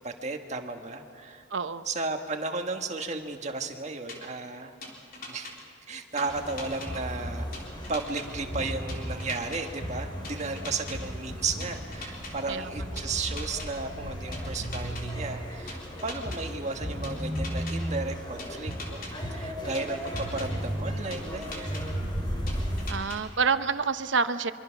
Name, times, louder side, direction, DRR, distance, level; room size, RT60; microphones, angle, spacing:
voice 1, 0.0-1.4 1.8-4.8 5.3-5.5 5.9-7.5 7.9-21.9, right 3 dB, 40° right, 4 dB, 1.6 m, -34 dB
voice 2, 1.5-1.9 12.5-12.8 22.9-24.5, right 5 dB, 75° right, 11 dB, 0.8 m, -28 dB
sound 1, 4.1-4.2 4.8-5.5 6.2-6.9 7.5-8.2 8.9-9.6 10.2-11.0 11.6-12.3 13.0-13.7 14.3-15.0 15.7-16.4 17.0-17.7 18.4-19.1 19.7-20.5 21.1-21.8 22.5-23.2, left 3 dB, 50° left, 3.7 m, -41 dB
sound 2, 6.3-22.9, equal, 25° left, 3.7 m, -35 dB
24.5 x 24.0 x 6.0 m, 2.2 s
head